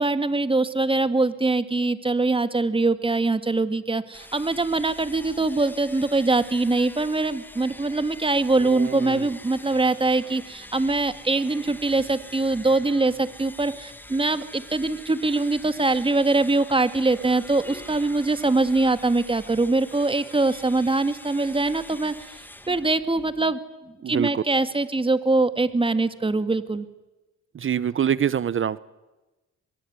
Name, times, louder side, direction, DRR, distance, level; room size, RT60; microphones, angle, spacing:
voice 1, 0.0-22.4 22.7-26.9, right 2 dB, 15° right, 11 dB, 1.9 m, -23 dB
sound 1, 4.1-23.6, left 1 dB, 5° left, 1.9 m, -45 dB
voice 2, 8.6-9.3 24.0-24.4 27.5-28.8, right 9 dB, 40° right, 18 dB, 0.8 m, -25 dB
23.0 x 22.5 x 9.6 m, 1.1 s
cardioid pair, 90°, 30 cm